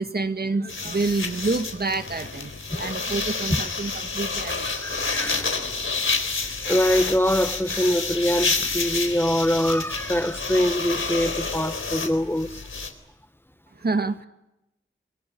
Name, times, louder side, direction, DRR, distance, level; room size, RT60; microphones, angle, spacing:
voice 1, 0.0-4.7 13.8-14.3, right 3 dB, 50° right, 1.8 m, -28 dB
sound 1, 0.7-12.9, left 4 dB, 75° left, 3.9 m, -29 dB
voice 2, 4.6-5.5 6.7-12.6, equal, 10° left, 1.2 m, -24 dB
24.5 x 23.5 x 9.4 m
wide cardioid pair, 90°, 21 cm